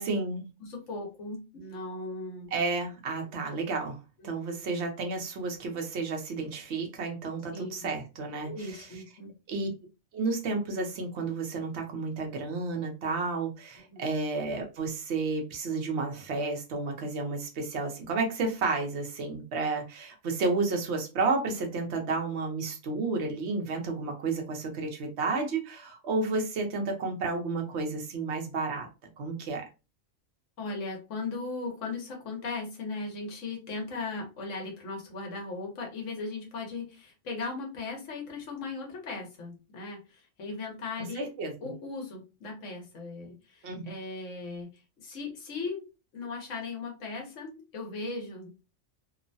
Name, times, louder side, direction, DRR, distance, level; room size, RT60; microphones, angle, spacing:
voice 1, 0.0-0.5 2.5-4.0 4.2-8.9 9.5-9.7 10.1-28.9 29.2-29.7 41.0-41.7 43.6-43.9, right 3 dB, 60° right, 2 dB, 1.0 m, -31 dB
voice 2, 0.6-2.5 4.2-4.6 7.5-7.7 8.4-9.3 13.9-14.1 30.6-41.3 41.6-44.7 45.0-45.9 46.1-48.5, left 3 dB, 70° left, 1 dB, 1.2 m, -38 dB
3.0 x 2.1 x 2.6 m, 0.30 s
omnidirectional pair, 1.4 m